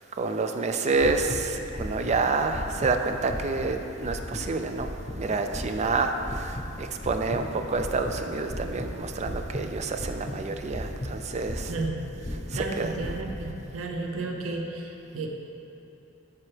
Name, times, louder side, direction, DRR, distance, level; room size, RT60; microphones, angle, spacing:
voice 1, 0.1-4.9 5.2-11.7 12.5-12.9, right 4 dB, 35° right, 6 dB, 0.4 m, -28 dB
sound 1, 0.9-13.4, equal, 30° left, 0.9 m, -36 dB
voice 2, 11.7-15.3, right 2 dB, 80° right, 2 dB, 0.6 m, -33 dB
7.3 x 6.1 x 3.2 m, 2.9 s
head